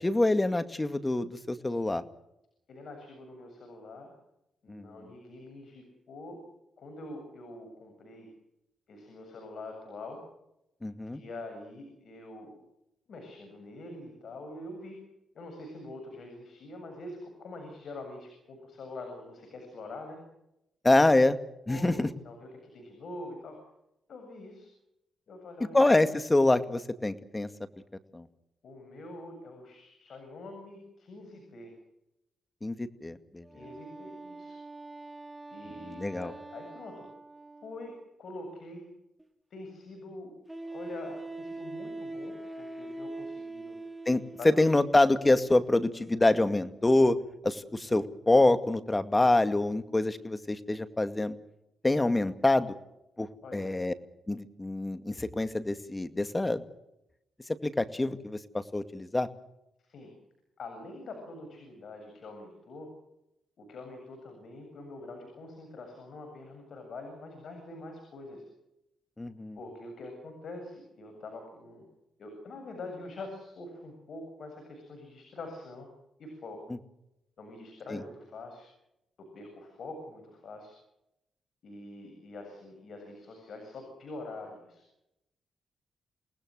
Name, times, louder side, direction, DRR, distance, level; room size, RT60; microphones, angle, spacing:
voice 1, 0.0-2.0 4.7-4.9 10.8-11.2 20.8-21.4 21.7-22.1 25.7-27.5 28.1-28.2 32.6-33.5 35.8-36.3 44.1-47.2 47.4-51.4 51.8-52.7 53.2-53.9 54.3-56.6 57.6-59.3 69.2-69.6 77.9-78.0, left 2 dB, 20° left, 10 dB, 2.2 m, -26 dB
voice 2, 2.7-4.2 4.6-6.4 6.8-8.3 8.9-10.2 11.1-12.6 13.1-15.0 15.3-20.2 21.7-23.6 24.1-24.7 25.3-25.8 28.6-31.7 33.5-34.6 35.5-37.1 37.6-37.9 38.2-38.9 39.5-40.3 40.6-43.8 44.4-44.8 53.4-53.8 59.8-60.1 60.6-62.9 63.6-68.4 69.6-71.9 72.2-75.9 76.2-76.6 77.4-78.7 79.3-80.7 81.6-84.8, left 2 dB, 65° left, 5 dB, 7.7 m, -45 dB
Wind instrument woodwind instrument, 33.4-38.1, right 2 dB, 25° right, 2.7 m, -47 dB
Wind instrument woodwind instrument 2, 39.2-39.3 40.5-44.6, right 2 dB, 5° right, 5.2 m, -40 dB
29.0 x 19.5 x 6.5 m, 0.85 s
cardioid pair, 65°, 0 cm